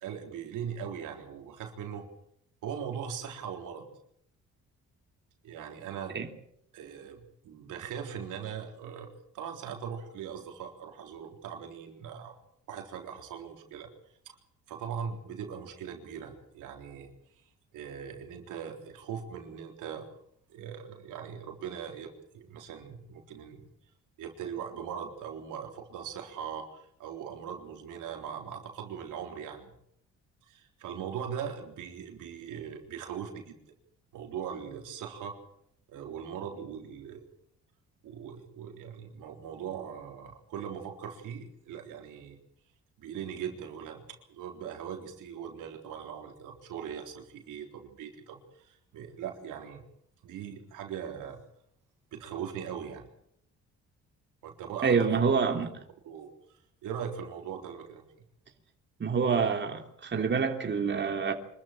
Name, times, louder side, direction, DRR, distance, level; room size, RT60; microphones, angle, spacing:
voice 1, 0.0-2.1 2.6-3.9 5.4-6.2 6.7-9.1 9.3-12.3 12.7-13.9 14.3-14.4 14.7-17.1 17.7-20.1 20.5-23.6 24.2-29.7 30.5-33.6 34.1-35.4 35.9-37.3 38.0-42.4 43.0-44.0 44.3-49.8 50.2-51.4 52.1-53.0 54.4-55.6 56.1-56.3 56.8-58.0, right 8 dB, 85° right, 3.8 m, -40 dB
voice 2, 54.8-55.7 59.0-61.3, right 5 dB, 40° right, 3.2 m, -27 dB
25.5 x 14.0 x 8.9 m
cardioid pair, 90°, 30 cm